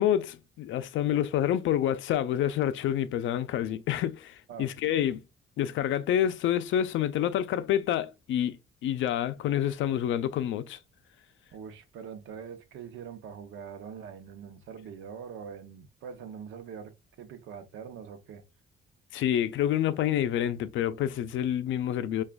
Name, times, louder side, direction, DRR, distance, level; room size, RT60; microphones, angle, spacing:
voice 1, 0.0-5.2 5.6-8.6 8.8-10.8 19.1-22.2, left 11 dB, 75° left, 0.4 m, -28 dB
voice 2, 11.5-18.4, right 7 dB, 80° right, 0.7 m, -43 dB
5.9 x 2.3 x 2.2 m
cardioid pair, 90°, 20 cm